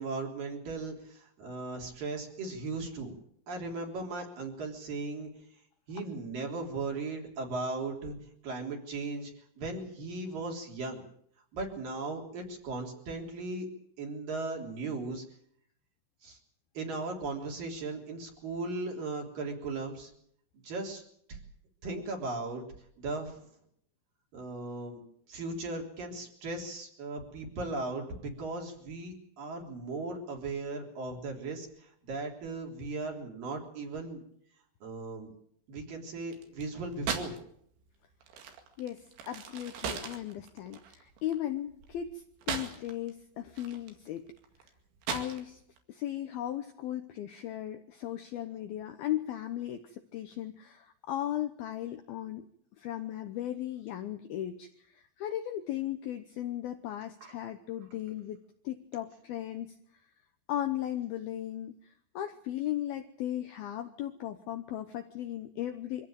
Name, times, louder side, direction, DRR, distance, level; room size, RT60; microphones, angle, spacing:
voice 1, 0.0-3.1 3.5-5.3 5.9-8.2 8.4-9.3 9.6-11.0 11.5-13.7 14.0-15.2 16.2-16.4 16.7-20.1 20.6-21.0 21.3-21.4 21.8-22.6 23.0-23.5 24.3-25.0 25.3-34.2 34.8-35.3 35.7-37.4 57.2-57.3, right 3 dB, 45° right, 1 dB, 4.9 m, -37 dB
sound 1, 36.3-37.5 37.7-43.1 43.5-45.8, right 7 dB, 65° right, 4.4 m, -39 dB
voice 2, 38.8-44.3 45.1-45.6 45.9-52.5 52.8-59.8 60.5-66.1, left 12 dB, 90° left, 7 dB, 2.1 m, -37 dB
24.5 x 15.5 x 9.0 m, 0.69 s
omnidirectional pair, 5.8 m